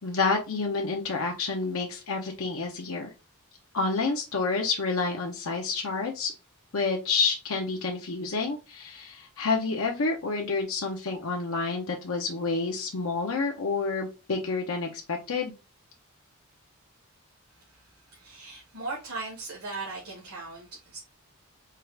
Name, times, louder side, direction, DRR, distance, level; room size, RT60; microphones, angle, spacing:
voice 1, 0.0-3.1 3.7-6.3 6.7-15.5, left 4 dB, 75° left, 0.7 m, -29 dB
voice 2, 18.1-21.0, right 3 dB, 80° right, 1.5 m, -38 dB
4.6 x 2.4 x 3.3 m
head